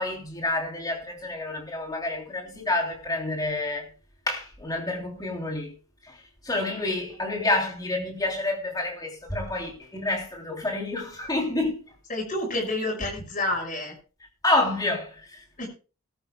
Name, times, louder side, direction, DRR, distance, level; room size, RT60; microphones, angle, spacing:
voice 1, 0.0-3.9 4.3-5.7 6.0-11.8 14.4-15.4, left 2 dB, 20° left, 3.2 m, -28 dB
voice 2, 12.1-13.9 15.6-15.7, left 1 dB, 40° left, 5.6 m, -29 dB
19.5 x 13.0 x 2.3 m
head